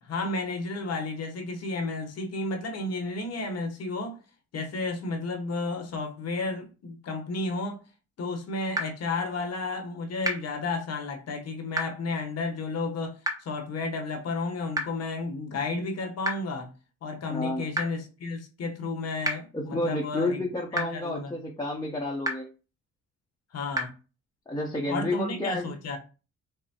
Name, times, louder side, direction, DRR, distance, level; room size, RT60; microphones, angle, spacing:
voice 1, 0.0-4.2 4.5-7.8 8.2-16.7 17.0-20.4 20.7-21.3 23.5-23.9 24.9-26.0, left 3 dB, 55° left, 1.0 m, -32 dB
sound 1, 8.7-8.8 10.2-10.3 11.7-11.8 13.2-13.3 14.7-14.8 16.2-16.3 17.7-17.8 19.2-19.3 20.7-20.8 22.2-22.3 23.7-23.8, right 1 dB, 10° right, 0.9 m, -27 dB
voice 2, 17.3-17.6 19.5-22.5 24.5-25.7, left 1 dB, 15° left, 0.7 m, -30 dB
5.5 x 2.1 x 2.8 m
cardioid pair, 90°, 30 cm